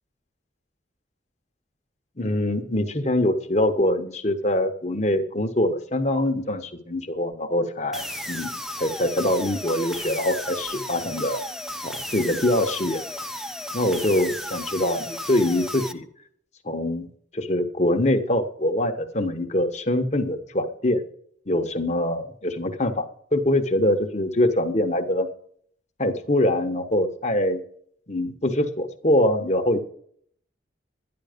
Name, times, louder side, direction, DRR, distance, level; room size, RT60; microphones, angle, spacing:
voice 1, 2.2-11.4 11.8-13.0 13.7-16.1 16.6-17.1 17.3-21.0 21.5-25.3 26.0-27.6 28.1-29.8, left 1 dB, 35° left, 7 dB, 1.2 m, -24 dB
sound 1, 7.9-15.9, equal, ahead, 0.7 m, -34 dB
12.5 x 10.5 x 5.2 m, 0.63 s
head